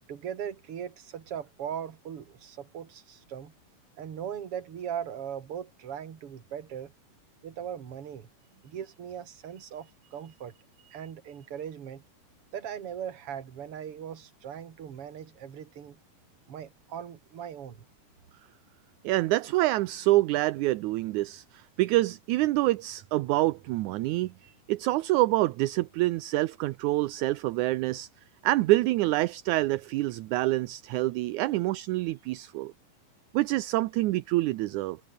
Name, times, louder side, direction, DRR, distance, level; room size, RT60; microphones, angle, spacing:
voice 1, 0.1-3.5 4.0-6.9 7.4-8.3 8.6-10.5 10.9-12.0 12.5-16.0 16.5-17.8, right 9 dB, 45° right, 2.7 m, -39 dB
voice 2, 19.0-28.1 28.4-32.7 33.3-35.0, right 18 dB, 75° right, 2.0 m, -26 dB
omnidirectional pair, 3.8 m